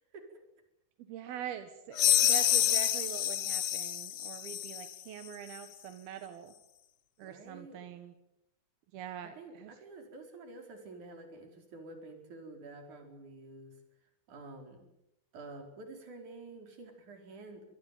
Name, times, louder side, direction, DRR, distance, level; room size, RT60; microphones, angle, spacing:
voice 1, 1.0-6.5 7.2-8.1 8.9-9.7, right 10 dB, 85° right, 9 dB, 3.3 m, -44 dB
sound 1, 2.0-4.9, left 11 dB, 80° left, 1.3 m, -28 dB
voice 2, 7.2-7.8 9.3-13.8 14.3-14.9 15.3-17.6, right 2 dB, 55° right, 5 dB, 5.8 m, -49 dB
25.5 x 20.5 x 9.1 m, 0.86 s
omnidirectional pair, 4.3 m